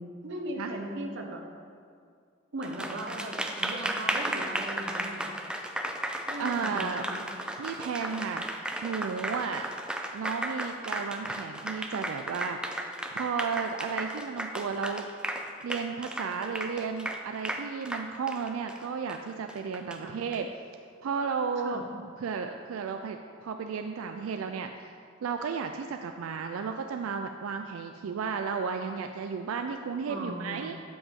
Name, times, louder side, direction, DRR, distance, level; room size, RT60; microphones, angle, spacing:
voice 1, 0.0-1.4 2.5-3.3 3.6-5.3 6.3-7.2 20.0-20.2 21.6-21.8 30.1-30.7, right 1 dB, 60° right, 2 dB, 0.9 m, -38 dB
Applause, 2.6-20.4, right 1 dB, 5° right, 0.4 m, -35 dB
voice 2, 5.9-7.1 7.6-9.7 10.1-12.6 13.1-15.1 15.6-20.5 21.0-30.8, right 5 dB, 90° right, 6 dB, 0.4 m, -34 dB
7.9 x 7.1 x 3.7 m, 2.3 s
head